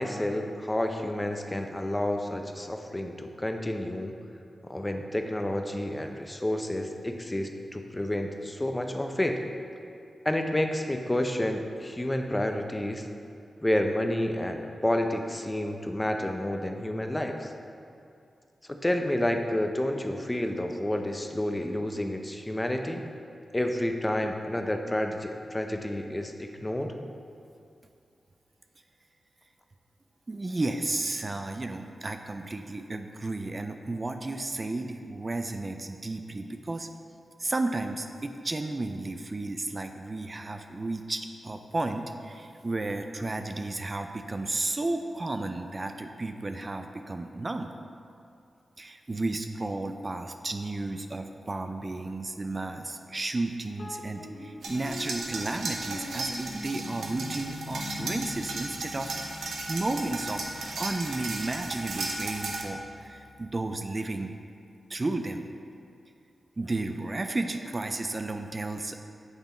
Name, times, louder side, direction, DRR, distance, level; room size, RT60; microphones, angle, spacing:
voice 1, 0.0-4.1 4.6-9.4 10.2-13.1 13.6-17.5 18.7-23.0 23.5-26.9, left 1 dB, 20° left, 4 dB, 0.6 m, -30 dB
voice 2, 30.3-36.9 37.4-47.7 48.8-59.2 59.7-60.4 60.8-64.3 64.9-65.5 66.6-69.0, right 2 dB, 40° right, 6 dB, 0.4 m, -33 dB
sound 1, 53.8-63.5, left 2 dB, 60° left, 0.9 m, -44 dB
sound 2, 54.6-62.6, right 3 dB, 85° right, 0.7 m, -36 dB
8.1 x 3.5 x 4.3 m, 2.5 s
cardioid pair, 45°, 0 cm